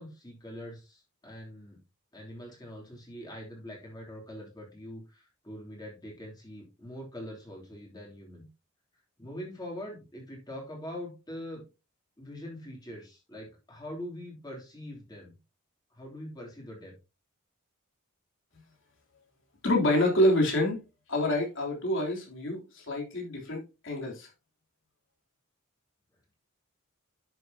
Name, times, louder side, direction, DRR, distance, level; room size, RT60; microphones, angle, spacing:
voice 1, 0.0-1.8 2.1-8.5 9.2-11.7 12.2-15.4 15.9-16.9, left 1 dB, 20° left, 3.0 m, -43 dB
voice 2, 19.6-20.8 21.1-24.3, left 1 dB, 60° left, 3.2 m, -27 dB
11.0 x 6.7 x 2.8 m
head